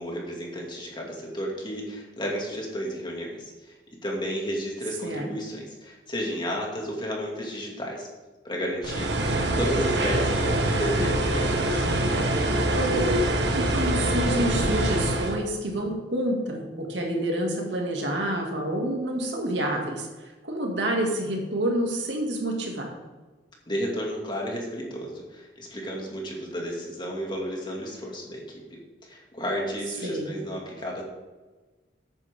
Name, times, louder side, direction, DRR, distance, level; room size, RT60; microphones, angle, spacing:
voice 1, 0.0-3.7 4.0-8.1 8.4-9.1 9.5-11.8 23.7-28.4 29.0-31.0, equal, 25° left, -1 dB, 2.5 m, -32 dB
sound 1, 8.8-15.4, right 1 dB, 75° right, 1.5 m, -24 dB
voice 2, 13.5-20.1 20.4-22.9 30.0-30.3, right 1 dB, 90° right, 0 dB, 2.6 m, -28 dB
13.0 x 9.0 x 3.8 m, 1.3 s
head